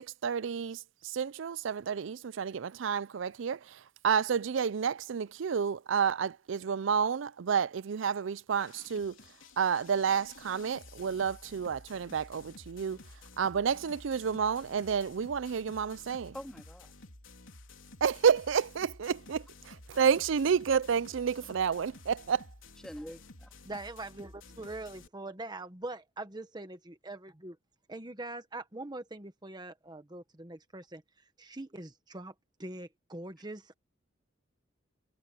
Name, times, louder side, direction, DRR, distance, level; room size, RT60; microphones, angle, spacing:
voice 1, 0.0-9.2 9.6-13.0 13.4-16.3 18.0-19.5 19.9-22.5, right 7 dB, 75° right, 0.4 m, -30 dB
sound 1, 8.5-25.1, left 2 dB, 85° left, 3.2 m, -53 dB
voice 2, 16.3-16.9 22.8-23.5, equal, 5° left, 2.2 m, -44 dB
voice 3, 23.6-27.6 27.9-31.0 31.4-32.3 32.6-33.7, right 2 dB, 20° right, 1.2 m, -43 dB
head